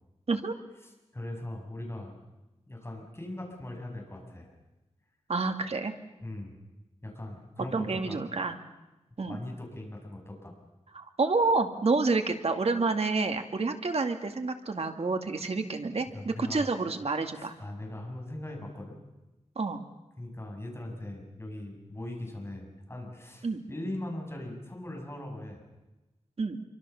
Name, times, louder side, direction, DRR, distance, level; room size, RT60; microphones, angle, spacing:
voice 1, 1.1-2.1 2.7-4.5 6.2-6.5 7.0-8.2 9.3-10.5 16.1-16.7 17.3-19.0 20.2-25.6, left 1 dB, 20° left, 1 dB, 7.2 m, -40 dB
voice 2, 5.3-5.9 7.7-8.6 9.2-9.4 10.9-17.5 19.6-19.8 23.4-23.6 26.4-26.6, right 3 dB, 65° right, 6 dB, 2.3 m, -29 dB
27.0 x 24.5 x 7.1 m, 1.0 s
wide cardioid pair, 100°, 12 cm